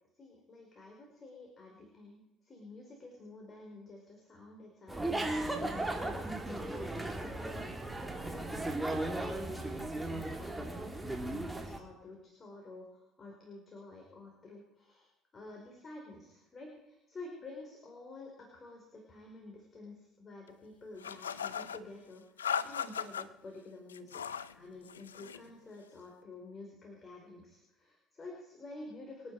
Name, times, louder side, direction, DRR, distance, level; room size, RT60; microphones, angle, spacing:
voice 1, 0.1-7.8 8.1-8.5 8.9-24.2 24.5-29.3, left 2 dB, 35° left, 0 dB, 5.0 m, -50 dB
sound 1, 4.9-11.8, right 2 dB, 10° right, 3.5 m, -36 dB
sound 2, 21.0-21.8 22.4-23.3 23.9-24.5 24.9-25.4, left 7 dB, 90° left, 0.5 m, -37 dB
27.5 x 9.8 x 4.9 m, 0.89 s
hypercardioid pair, 60°, 0 cm